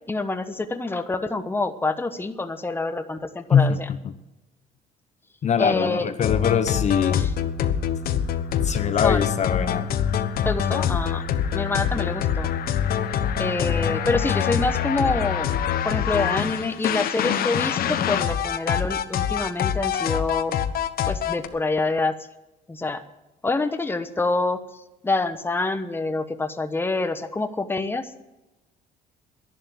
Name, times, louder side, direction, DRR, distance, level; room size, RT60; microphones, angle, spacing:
voice 1, 0.1-3.9 5.6-6.1 7.1-7.3 9.0-9.3 10.4-11.2 11.5-12.5 13.4-15.5 15.8-20.6 21.1-22.2 22.7-23.0 23.4-28.3, left 3 dB, 15° left, 8 dB, 1.1 m, -26 dB
voice 2, 3.5-4.1 5.4-7.2 8.1-8.2 8.6-9.9, left 7 dB, 45° left, 10 dB, 0.9 m, -23 dB
sound 1, 6.2-21.5, left 9 dB, 60° left, 1.1 m, -25 dB
11.5 x 11.0 x 7.7 m, 1.0 s
cardioid pair, 110°, 17 cm